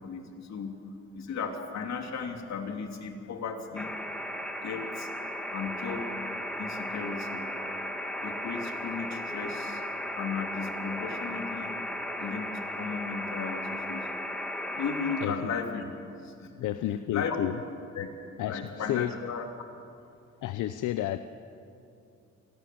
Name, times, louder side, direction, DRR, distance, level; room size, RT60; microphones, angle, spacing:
voice 1, 0.0-0.8 1.1-3.9 4.6-5.1 5.5-6.0 6.6-7.5 8.2-9.8 10.1-11.8 12.2-14.1 14.7-15.8 16.2-16.8 17.1-17.5 17.9-18.1 18.4-19.5, left 5 dB, 60° left, 4 dB, 3.4 m, -35 dB
sound 1, 3.8-15.3, left 1 dB, 5° left, 2.7 m, -35 dB
voice 2, 16.6-17.6 18.4-18.6 18.9-19.1 20.4-21.2, left 13 dB, 85° left, 11 dB, 0.8 m, -30 dB
27.5 x 20.0 x 7.9 m, 2.7 s
cardioid pair, 90°, 30 cm